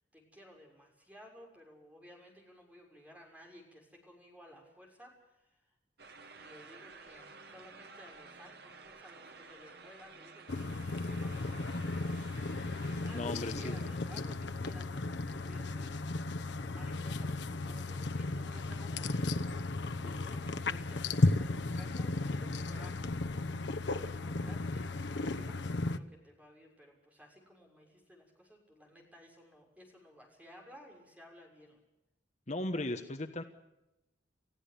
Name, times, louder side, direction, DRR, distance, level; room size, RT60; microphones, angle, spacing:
voice 1, 0.1-5.7 6.3-12.1 13.0-23.4 23.8-31.8, equal, 10° right, 1 dB, 6.6 m, -56 dB
sound 1, 6.0-14.0, right 4 dB, 60° right, 2.0 m, -53 dB
sound 2, 10.5-26.0, left 2 dB, 75° left, 1.0 m, -35 dB
voice 2, 13.1-13.8 32.5-33.4, left 2 dB, 40° left, 7 dB, 1.2 m, -36 dB
29.0 x 15.5 x 6.9 m, 0.94 s
head